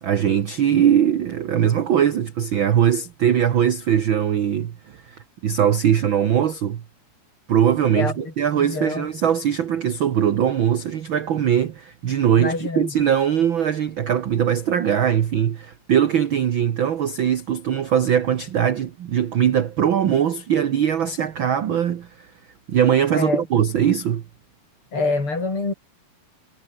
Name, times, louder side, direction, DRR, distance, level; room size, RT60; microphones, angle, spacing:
voice 1, 0.0-6.8 7.5-22.1 22.7-24.2, right 9 dB, 70° right, 1.1 m, -21 dB
voice 2, 7.9-9.1 12.4-12.9 23.1-23.4 24.9-25.7, left 3 dB, 35° left, 6.4 m, -26 dB
omnidirectional pair, 3.9 m